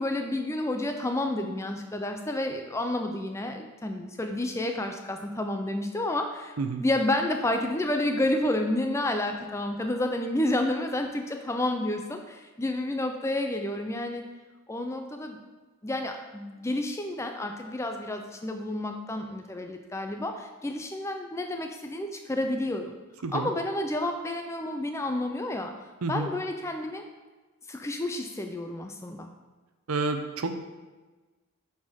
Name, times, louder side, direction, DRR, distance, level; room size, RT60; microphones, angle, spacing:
voice 1, 0.0-14.2 14.7-15.4 15.8-22.9 23.3-25.7 26.1-27.1 27.7-29.3, left 1 dB, 15° left, 5 dB, 0.4 m, -30 dB
voice 2, 29.9-30.5, right 3 dB, 90° right, 7 dB, 0.6 m, -29 dB
7.6 x 4.3 x 3.6 m, 1.3 s
head